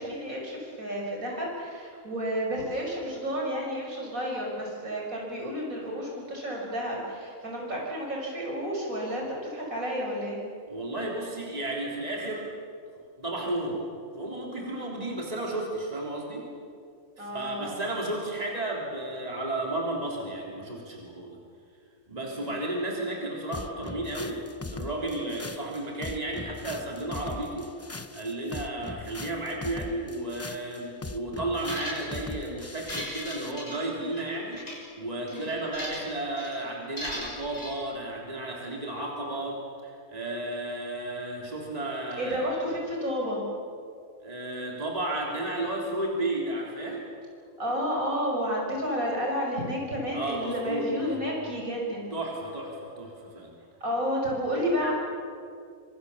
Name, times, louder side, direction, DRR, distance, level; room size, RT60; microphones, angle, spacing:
voice 1, 0.0-10.4 17.2-17.8 22.2-22.5 35.2-35.5 42.2-43.4 47.6-52.1 53.8-54.9, equal, 75° right, -2 dB, 6.6 m, -31 dB
voice 2, 10.7-12.5 13.2-13.8 14.1-16.5 17.2-21.4 22.1-24.4 24.7-27.7 28.1-42.5 44.2-47.0 50.1-51.3 52.1-53.5, right 1 dB, 25° right, -2 dB, 3.7 m, -33 dB
sound 1, 23.5-33.6, left 3 dB, 20° left, 0.3 m, -40 dB
sound 2, 31.6-32.3 32.7-34.2 34.5-34.8 35.3-36.1 36.4-36.6 37.0-37.7, left 1 dB, 65° left, 7.1 m, -38 dB
26.0 x 25.0 x 7.3 m, 2.3 s
omnidirectional pair, 1.5 m